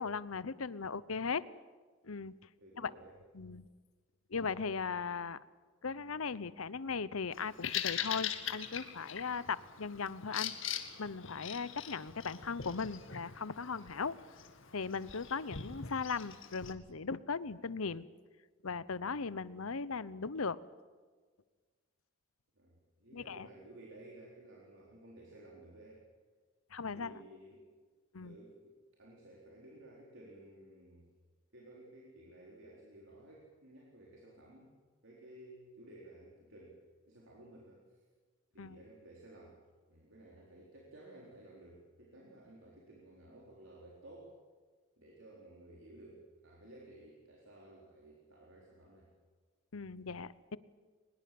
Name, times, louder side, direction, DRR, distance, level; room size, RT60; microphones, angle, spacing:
voice 1, 0.0-1.4 2.0-2.4 2.8-2.9 3.3-3.7 4.3-5.4 5.8-10.6 11.0-14.2 14.7-18.1 18.6-20.6 23.1-23.5 26.7-27.1 28.1-28.3 38.6-38.8 49.7-50.6, left 5 dB, 85° left, 18 dB, 0.9 m, -38 dB
voice 2, 2.6-3.2 22.6-26.1 26.9-27.6 28.2-31.1 31.5-34.7 35.0-36.8 37.1-38.0 38.5-39.6 39.9-44.4 45.0-49.1, right 1 dB, 65° right, -2 dB, 4.1 m, -55 dB
Bird vocalization bird call bird song, 7.3-16.7, left 9 dB, 65° left, 2.0 m, -42 dB
23.0 x 21.0 x 7.8 m, 1.5 s
head